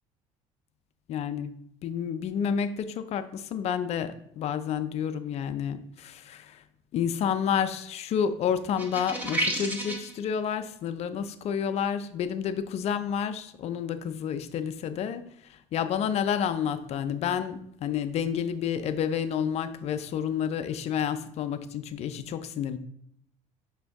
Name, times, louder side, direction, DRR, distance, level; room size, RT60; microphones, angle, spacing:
voice 1, 1.1-1.5 1.8-6.6 6.9-15.2 15.7-22.8, left 8 dB, 45° left, 11 dB, 0.4 m, -30 dB
sound 1, 8.8-10.1, right 1 dB, 10° right, 1.0 m, -30 dB
5.6 x 2.6 x 3.4 m, 0.71 s
supercardioid pair, 100°, 15 cm